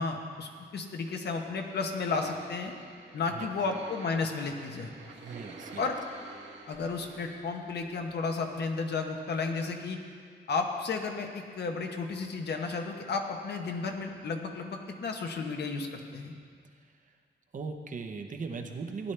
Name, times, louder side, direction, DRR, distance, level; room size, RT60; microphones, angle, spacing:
voice 1, 0.0-2.7 3.1-4.9 5.8-6.0 6.7-10.0 10.5-16.3, left 4 dB, 65° left, 3 dB, 1.1 m, -33 dB
sound 1, 1.6-8.2 8.6-8.7 9.0-9.1 9.4-9.5 9.7-9.8, right 3 dB, 80° right, 1.6 m, -49 dB
voice 2, 5.2-5.9 16.7-17.1 17.5-19.1, right 4 dB, 45° right, 5 dB, 0.8 m, -39 dB
15.5 x 10.5 x 3.4 m, 2.1 s
wide cardioid pair, 160°, 19 cm